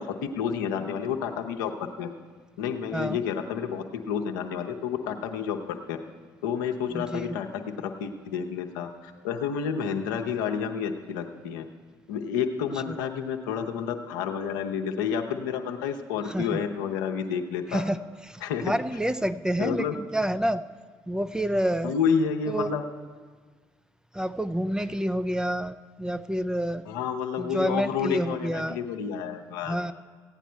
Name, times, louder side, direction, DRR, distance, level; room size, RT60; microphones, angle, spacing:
voice 1, 0.0-2.1 2.6-6.0 6.4-11.6 12.1-17.8 18.4-18.7 19.6-19.9 21.8-22.8 26.9-29.8, left 7 dB, 85° left, 4 dB, 0.7 m, -30 dB
voice 2, 6.9-7.4 12.9-13.0 16.2-16.6 17.7-18.0 18.3-20.6 21.1-21.9 22.5-22.8 24.1-26.9 27.4-28.8 29.6-29.9, equal, 5° right, 11 dB, 0.4 m, -28 dB
15.5 x 9.1 x 4.4 m, 1.5 s
hypercardioid pair, 50°, 10 cm